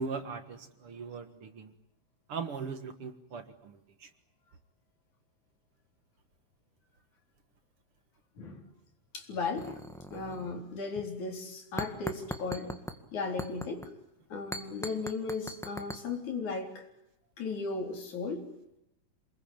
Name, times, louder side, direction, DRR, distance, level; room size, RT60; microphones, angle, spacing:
voice 1, 0.0-1.7 2.3-4.1, right 4 dB, 55° right, 8 dB, 2.4 m, -39 dB
voice 2, 9.1-9.8 10.1-12.7 13.1-13.9 14.3-16.9 17.4-18.5, left 4 dB, 80° left, 3 dB, 5.3 m, -36 dB
sound 1, 9.5-10.7 11.0-11.1 11.8-13.0 13.4-13.9 14.5-16.0, equal, ahead, 1.0 m, -40 dB
28.0 x 21.0 x 9.0 m, 0.82 s
omnidirectional pair, 3.3 m